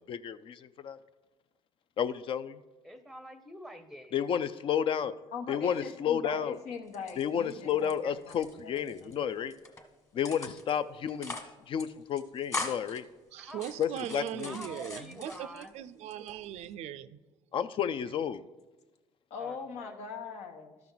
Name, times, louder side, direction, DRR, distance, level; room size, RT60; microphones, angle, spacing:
voice 1, 0.1-1.0 2.0-2.6 4.1-5.1 5.5-6.6 7.2-9.5 10.1-11.4 11.7-13.0 13.8-14.6 17.5-18.4, left 8 dB, 50° left, 0.4 m, -31 dB
voice 2, 2.8-4.2 13.4-13.6 14.4-15.7 19.4-20.0, equal, ahead, 0.7 m, -46 dB
voice 3, 5.3-9.1 19.3-20.8, left 5 dB, 80° left, 1.1 m, -41 dB
sound 1, 6.9-7.9 8.2-9.1 9.5-9.8 10.2-10.8 11.1-11.5 11.8-11.9 12.2-13.0 13.5-15.7 16.1-16.7, left 3 dB, 25° left, 1.4 m, -41 dB
voice 4, 13.3-17.2, right 10 dB, 75° right, 0.4 m, -40 dB
13.0 x 5.9 x 3.9 m
cardioid pair, 110°, 11 cm